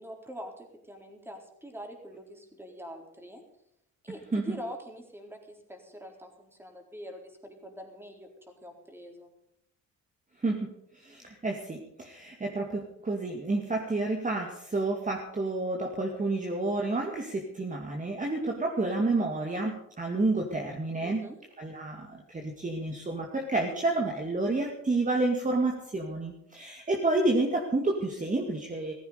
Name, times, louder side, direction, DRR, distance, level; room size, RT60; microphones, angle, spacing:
voice 1, 0.0-3.4 4.0-8.3 8.6-9.3 21.0-21.4, equal, 10° right, 2 dB, 4.0 m, -44 dB
voice 2, 10.4-10.7 10.9-21.3 21.6-28.9, right 2 dB, 25° right, 1 dB, 2.3 m, -30 dB
15.0 x 15.0 x 5.1 m, 0.75 s
cardioid pair, 90°, 30 cm